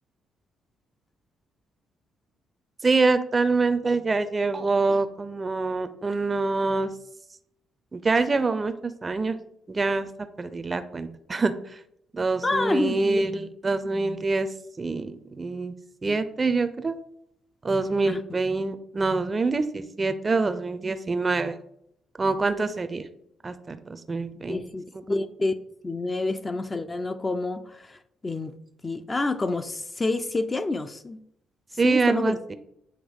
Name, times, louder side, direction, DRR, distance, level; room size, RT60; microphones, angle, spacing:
voice 1, 2.8-6.9 7.9-9.4 9.7-10.1 10.4-11.8 12.1-14.5 14.8-15.7 16.0-17.0 17.6-21.6 22.2-23.1 23.4-24.6 31.8-32.5, right 3 dB, 30° right, 10 dB, 0.5 m, -25 dB
voice 2, 12.4-13.3 18.0-18.4 24.4-25.6 25.8-28.6 28.8-31.2 31.8-32.4, left 2 dB, 25° left, 9 dB, 0.5 m, -28 dB
8.1 x 3.0 x 5.1 m, 0.73 s
cardioid pair, 90°, 0 cm